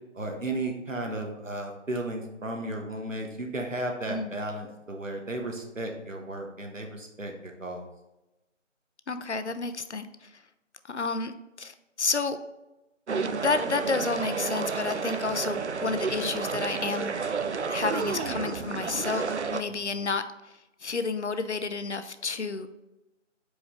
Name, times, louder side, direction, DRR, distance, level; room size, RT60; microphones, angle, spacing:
voice 1, 0.1-7.8, right 1 dB, 85° right, 3 dB, 1.3 m, -34 dB
voice 2, 4.1-4.4 9.1-10.3 10.9-11.3 11.6-12.4 13.4-17.1 17.7-20.5 20.8-22.7, left 4 dB, 65° left, 10 dB, 0.6 m, -30 dB
sound 1, 13.1-19.6, right 5 dB, 65° right, 0.5 m, -31 dB
5.0 x 4.9 x 3.8 m, 0.99 s
figure-of-eight pair, 165°, 38 cm